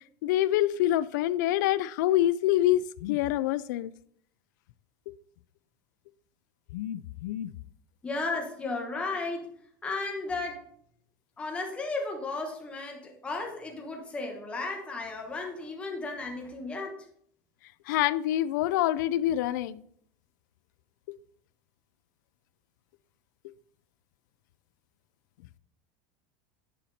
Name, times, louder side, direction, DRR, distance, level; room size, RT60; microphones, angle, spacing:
voice 1, 0.2-3.9 6.7-7.5 17.9-19.8, left 13 dB, 85° left, 0.4 m, -26 dB
voice 2, 8.0-9.5 9.8-10.6 11.4-17.0, left 3 dB, 10° left, 1.2 m, -34 dB
9.9 x 4.3 x 4.1 m
cardioid pair, 170°, 10 cm